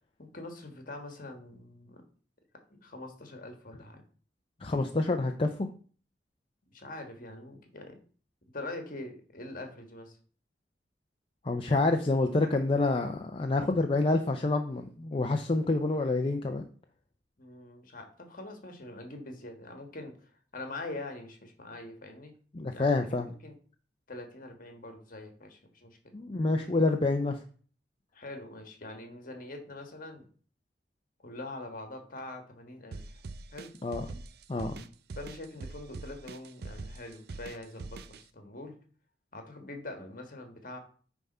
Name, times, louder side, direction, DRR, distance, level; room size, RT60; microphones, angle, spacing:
voice 1, 0.2-2.0 2.7-4.0 6.6-7.9 8.5-10.2 17.4-22.3 22.7-23.0 23.2-23.5 24.1-26.1 28.1-30.3 31.2-33.2 33.5-33.7 35.1-38.7 39.3-40.8, left 2 dB, 50° left, 4 dB, 1.5 m, -44 dB
voice 2, 4.6-5.7 11.4-16.6 22.5-23.3 26.1-27.4 33.8-34.0 34.5-34.8, left 2 dB, 30° left, 4 dB, 0.5 m, -27 dB
sound 1, 32.9-38.2, right 3 dB, 60° right, 0.5 m, -43 dB
9.3 x 3.6 x 5.4 m, 0.43 s
head